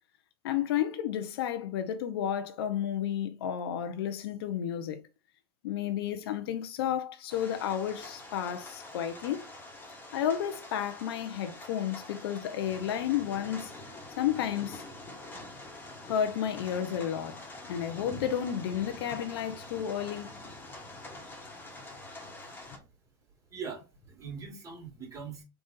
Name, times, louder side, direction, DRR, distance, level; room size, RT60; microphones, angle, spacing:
voice 1, 0.4-5.0 5.6-9.5 10.1-13.7 14.2-14.9 16.0-17.4 17.7-20.3, left 9 dB, 80° left, 0.6 m, -32 dB
sound 1, 7.3-22.8, left 2 dB, 15° left, 1.2 m, -45 dB
voice 2, 22.4-22.9 23.5-25.4, right 6 dB, 25° right, 2.1 m, -42 dB
3.9 x 2.4 x 3.9 m
supercardioid pair, 115°, 13 cm